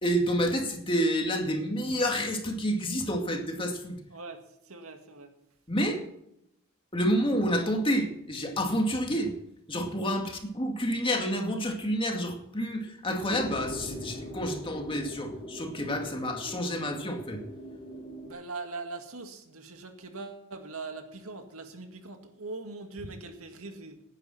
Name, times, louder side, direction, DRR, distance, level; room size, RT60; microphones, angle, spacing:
voice 1, 0.0-4.0 5.7-6.0 6.9-9.3 9.7-17.4, equal, 25° left, 3 dB, 2.3 m, -29 dB
voice 2, 4.1-5.3 18.2-24.0, right 3 dB, 85° right, 5 dB, 2.0 m, -41 dB
sound 1, 13.3-18.3, equal, 40° left, 4.1 m, -41 dB
18.0 x 10.5 x 4.4 m, 0.77 s
head